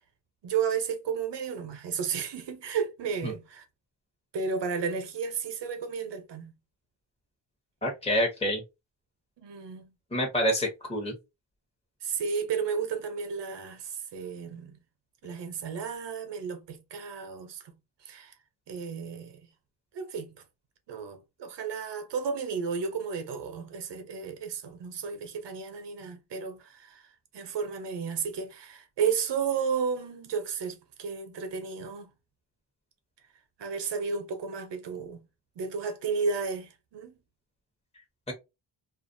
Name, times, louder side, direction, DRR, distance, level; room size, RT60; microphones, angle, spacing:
voice 1, 0.4-3.7 4.3-6.5 9.4-9.9 12.0-14.8 15.2-17.6 18.0-18.3 18.7-19.4 19.9-20.4 20.9-27.1 27.3-32.1 33.6-35.2 35.6-37.2, right 6 dB, 65° right, 0.8 m, -33 dB
voice 2, 7.8-8.6 10.1-11.1, equal, 15° left, 0.9 m, -27 dB
2.4 x 2.4 x 2.6 m
cardioid pair, 75°, 45 cm